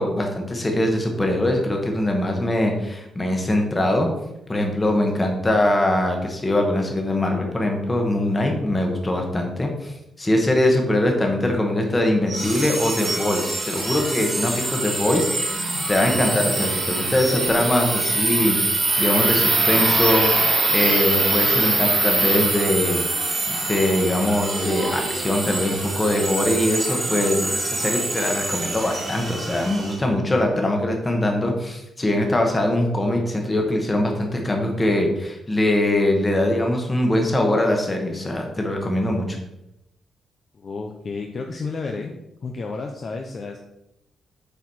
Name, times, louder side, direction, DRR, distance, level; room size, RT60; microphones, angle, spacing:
voice 1, 0.0-4.1 4.5-20.3 20.7-23.0 23.5-39.4, left 1 dB, 15° left, 2 dB, 1.2 m, -22 dB
sound 1, 12.3-29.9, right 2 dB, 30° right, 1.6 m, -24 dB
voice 2, 40.5-42.1 42.4-43.6, left 4 dB, 35° left, 3 dB, 0.6 m, -31 dB
8.1 x 4.7 x 4.2 m, 0.86 s
wide cardioid pair, 180°, 0 cm